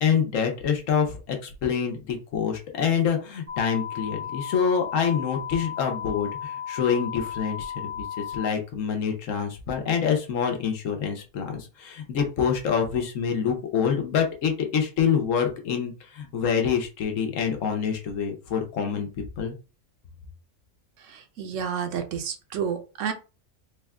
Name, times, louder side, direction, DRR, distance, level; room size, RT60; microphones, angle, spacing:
voice 1, 0.0-19.1 19.4-19.5, left 7 dB, 80° left, 4 dB, 1.2 m, -26 dB
sound 1, 3.5-8.5, left 9 dB, 40° right, 0.5 m, -35 dB
voice 2, 21.0-23.1, right 7 dB, 75° right, 6 dB, 1.0 m, -30 dB
3.4 x 2.2 x 3.5 m, 0.32 s
omnidirectional pair, 1.3 m